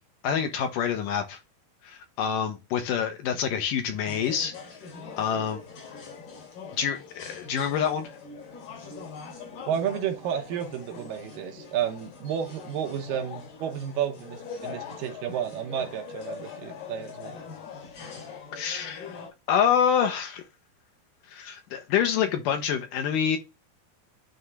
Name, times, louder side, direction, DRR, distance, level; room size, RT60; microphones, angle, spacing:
voice 1, 0.2-1.4 1.8-4.5 5.2-5.6 6.8-8.1 18.5-19.2 19.5-20.4 21.3-23.4, left 8 dB, 70° left, 2.4 m, -26 dB
sound 1, 4.1-19.3, left 5 dB, 90° left, 5.2 m, -42 dB
voice 2, 9.7-17.4, right 9 dB, 75° right, 2.4 m, -31 dB
9.6 x 3.6 x 3.2 m
omnidirectional pair, 4.2 m